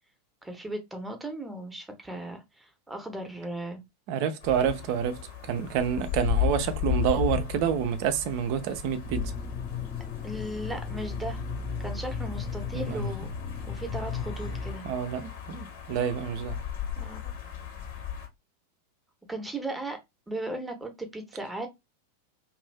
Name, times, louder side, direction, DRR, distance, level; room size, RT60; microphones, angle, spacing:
voice 1, 0.4-3.8 10.2-11.4 11.8-13.3 13.7-14.8 17.0-17.3 19.3-20.0 20.3-21.7, right 1 dB, 5° right, 0.8 m, -37 dB
voice 2, 4.1-9.3 12.7-13.3 14.8-16.6, right 8 dB, 45° right, 0.5 m, -28 dB
sound 1, 4.4-18.3, left 10 dB, 55° left, 1.1 m, -35 dB
sound 2, 9.0-14.8, left 5 dB, 25° left, 0.6 m, -35 dB
2.6 x 2.5 x 3.2 m
figure-of-eight pair, 90°, 0 cm